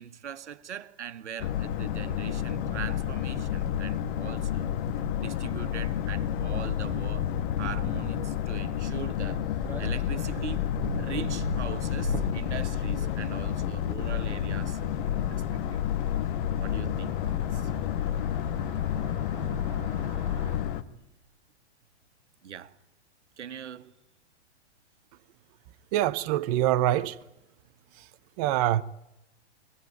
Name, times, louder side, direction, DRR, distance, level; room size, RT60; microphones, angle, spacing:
voice 1, 0.0-4.7 5.2-10.7 11.0-14.8 15.2-15.8 16.6-17.7 22.4-22.8 23.4-23.9, right 8 dB, 90° right, 1.6 m, -41 dB
Boat Water vehicle, 1.4-20.8, left 10 dB, 45° left, 1.6 m, -30 dB
sound 1, 9.6-20.6, right 3 dB, 5° right, 7.0 m, -42 dB
voice 2, 25.9-27.2 28.4-28.8, right 13 dB, 35° right, 0.8 m, -24 dB
23.5 x 19.0 x 9.4 m
hypercardioid pair, 150°, 34 cm